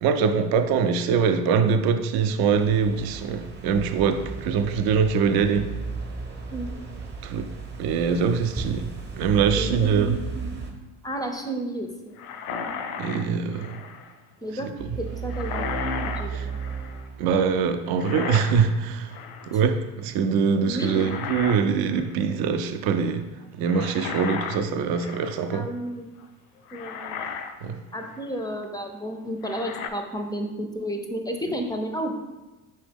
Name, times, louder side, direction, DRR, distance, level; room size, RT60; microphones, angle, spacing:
voice 1, 0.0-5.7 7.2-7.5 7.8-8.9 9.2-10.2 13.0-13.8 14.8-14.9 16.3-16.5 17.2-19.1 19.5-23.2 23.6-25.7 27.6-27.8, right 6 dB, 55° right, 0.6 m, -23 dB
sound 1, 2.5-10.7, right 4 dB, 25° right, 0.9 m, -35 dB
voice 2, 9.6-10.7 11.0-12.2 14.4-14.7 15.0-15.7 16.1-16.6 20.7-21.1 25.5-26.1 26.7-27.2 27.9-32.2, right 1 dB, 10° left, 0.5 m, -32 dB
sound 2, 12.2-14.1 15.3-17.0 18.0-18.8 19.1-19.6 20.7-21.6 21.9-22.2 23.7-25.5 26.2-26.3 26.7-27.6 28.0-28.2 29.4-29.9, left 6 dB, 75° left, 0.5 m, -34 dB
sound 3, 14.8-17.8, right 7 dB, 80° right, 0.9 m, -34 dB
5.3 x 2.8 x 3.4 m
hypercardioid pair, 60°, 44 cm